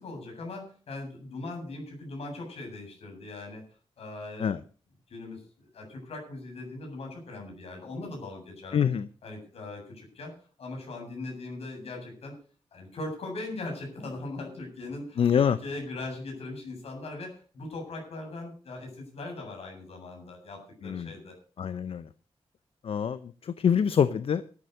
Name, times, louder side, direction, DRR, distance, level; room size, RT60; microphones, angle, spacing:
voice 1, 0.0-3.6 4.0-4.6 5.1-8.8 9.2-10.3 10.6-12.3 12.7-15.2 15.5-21.4, left 2 dB, 85° left, 7.8 m, -40 dB
voice 2, 8.7-9.1 15.2-15.6 20.8-21.1 21.6-22.1 22.8-24.4, left 7 dB, 65° left, 0.6 m, -25 dB
13.0 x 10.0 x 6.6 m
wide cardioid pair, 120°, 10 cm